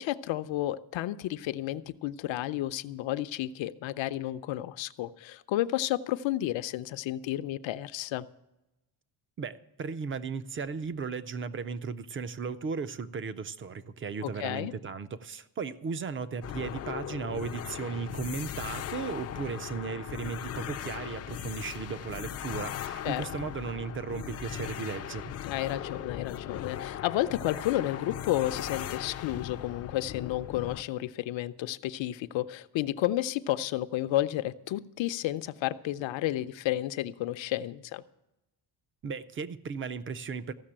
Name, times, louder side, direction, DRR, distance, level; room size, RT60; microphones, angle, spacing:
voice 1, 0.0-8.3 14.2-14.7 23.0-23.3 25.4-38.0, left 14 dB, 70° left, 12 dB, 0.7 m, -31 dB
voice 2, 9.4-25.3 39.0-40.5, right 5 dB, 30° right, 14 dB, 0.4 m, -36 dB
sound 1, 16.4-30.8, left 10 dB, 35° left, 0.4 m, -38 dB
14.5 x 6.7 x 8.8 m, 0.92 s
cardioid pair, 155°, 47 cm